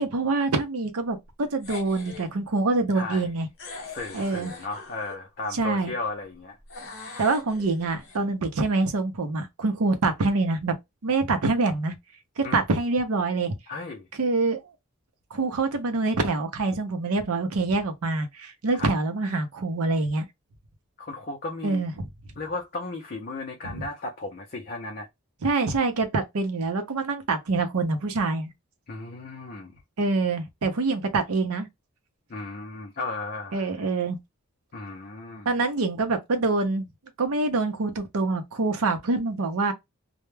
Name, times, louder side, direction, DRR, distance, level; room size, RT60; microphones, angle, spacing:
voice 1, 0.0-3.5 4.1-4.5 5.5-5.9 7.2-10.8 11.0-12.0 12.4-13.5 14.2-14.6 15.3-20.3 21.6-21.9 23.6-23.9 25.4-28.5 30.0-31.7 33.5-34.2 35.5-36.9 37.2-39.7, right 3 dB, 80° right, 0.6 m, -25 dB
sound 1, 1.6-2.3 3.6-5.2 6.7-8.2, left 3 dB, 60° left, 1.0 m, -42 dB
voice 2, 2.9-3.3 3.9-6.6 12.4-12.6 13.7-14.1 18.7-18.9 21.0-21.8 22.4-25.1 28.9-29.8 32.3-33.9 34.7-35.5, left 3 dB, 40° left, 0.5 m, -35 dB
2.2 x 2.1 x 3.1 m
head